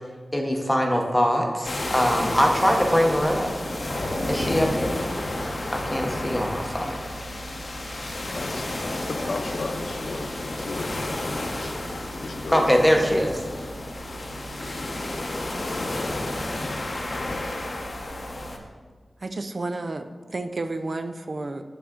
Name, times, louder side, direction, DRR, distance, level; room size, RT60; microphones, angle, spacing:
voice 1, 0.3-3.5 4.3-5.0 5.7-7.0 12.5-13.4, equal, 5° left, 1 dB, 0.8 m, -22 dB
sound 1, 1.6-18.6, left 1 dB, 50° left, 0.7 m, -31 dB
voice 2, 8.4-11.9 12.2-12.6, left 3 dB, 85° left, 7 dB, 0.4 m, -36 dB
voice 3, 19.2-21.6, right 2 dB, 50° right, 9 dB, 0.4 m, -31 dB
8.4 x 3.7 x 3.6 m, 1.5 s
wide cardioid pair, 85°, 0 cm